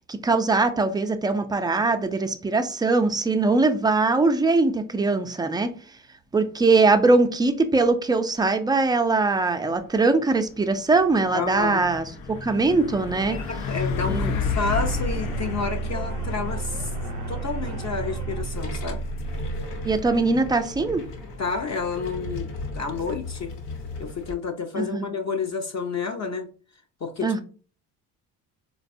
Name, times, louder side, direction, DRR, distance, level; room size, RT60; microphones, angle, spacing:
voice 1, 0.1-5.7 6.3-12.1 12.4-13.4 14.1-14.3 19.8-21.0 24.8-25.1 27.2-27.4, right 3 dB, 10° right, 0.3 m, -21 dB
Truck, 9.8-24.1, left 4 dB, 85° left, 0.7 m, -33 dB
voice 2, 11.3-11.8 13.3-16.9 17.3-19.0 21.4-22.5 22.7-23.5 24.0-26.5 27.0-27.3, left 5 dB, 35° left, 0.6 m, -30 dB
sound 1, 14.8-20.8, right 4 dB, 45° right, 0.7 m, -32 dB
sound 2, 18.3-24.3, left 2 dB, 60° left, 1.0 m, -36 dB
3.9 x 2.2 x 2.6 m
supercardioid pair, 60°, 47 cm